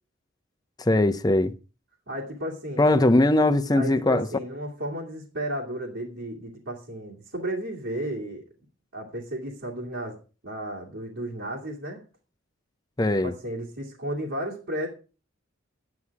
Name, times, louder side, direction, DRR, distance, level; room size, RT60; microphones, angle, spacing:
voice 1, 0.8-1.5 2.8-4.3 13.0-13.3, left 2 dB, 20° left, 0.6 m, -20 dB
voice 2, 2.1-2.9 3.7-8.4 8.9-12.0 13.2-14.9, right 1 dB, 65° right, 2.5 m, -33 dB
11.5 x 9.8 x 4.7 m
head